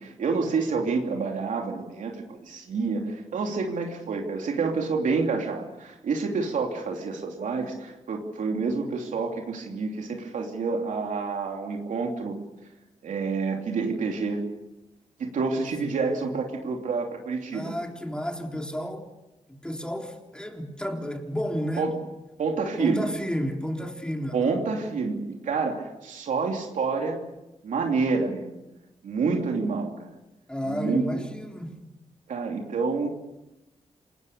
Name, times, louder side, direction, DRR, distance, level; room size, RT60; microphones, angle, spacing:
voice 1, 0.0-12.4 13.0-14.5 15.2-17.7 21.8-22.0 22.4-23.1 24.3-27.2 27.6-28.5 29.0-30.1 30.6-31.0 32.3-33.1, right 4 dB, 90° right, 3.0 m, -28 dB
voice 2, 15.8-16.4 17.5-19.1 19.5-22.0 22.8-24.6 30.5-31.8, equal, 5° left, 3.7 m, -32 dB
28.0 x 20.0 x 6.8 m
cardioid pair, 90°, 13 cm